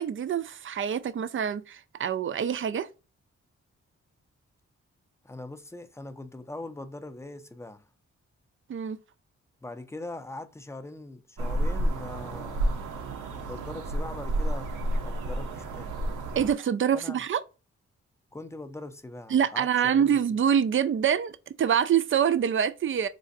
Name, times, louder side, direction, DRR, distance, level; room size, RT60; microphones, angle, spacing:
voice 1, 0.0-2.9 8.7-9.0 16.4-17.4 19.3-23.1, right 8 dB, 45° right, 0.5 m, -25 dB
voice 2, 5.2-7.9 9.6-12.9 13.2-14.7 15.0-16.0 16.9-17.2 18.3-20.2, left 2 dB, 10° left, 0.5 m, -41 dB
sound 1, 11.4-16.5, right 1 dB, 85° right, 0.6 m, -30 dB
4.0 x 2.5 x 2.5 m
cardioid pair, 50°, 30 cm